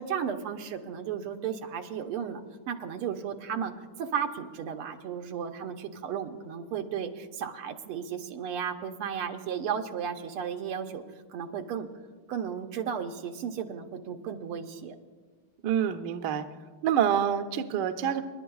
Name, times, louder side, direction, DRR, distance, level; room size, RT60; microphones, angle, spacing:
voice 1, 0.0-3.7 4.0-11.0 11.3-11.9 12.3-15.0, right 7 dB, 85° right, 5 dB, 1.7 m, -34 dB
voice 2, 15.6-16.4 16.8-18.2, right 9 dB, 70° right, 8 dB, 1.1 m, -26 dB
29.0 x 11.0 x 2.3 m, 1.4 s
omnidirectional pair, 2.4 m